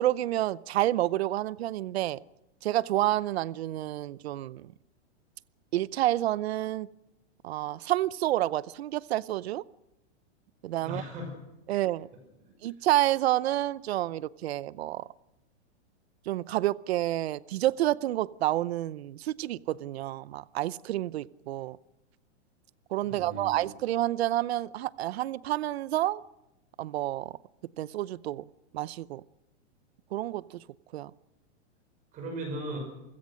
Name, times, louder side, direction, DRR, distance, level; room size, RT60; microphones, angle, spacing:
voice 1, 0.0-2.2 2.6-4.7 5.7-6.9 7.4-9.6 10.6-11.0 11.7-12.1 12.6-15.1 16.3-21.8 22.9-26.2 26.8-27.3 27.8-28.4 28.7-29.2 30.1-30.6 30.9-31.1, right 14 dB, 60° right, 0.7 m, -29 dB
voice 2, 10.8-11.4 11.7-11.8 12.4-12.6 23.0-23.6 32.1-32.8, right 1 dB, 20° right, 5.9 m, -38 dB
28.0 x 16.0 x 6.4 m
supercardioid pair, 170°, 35 cm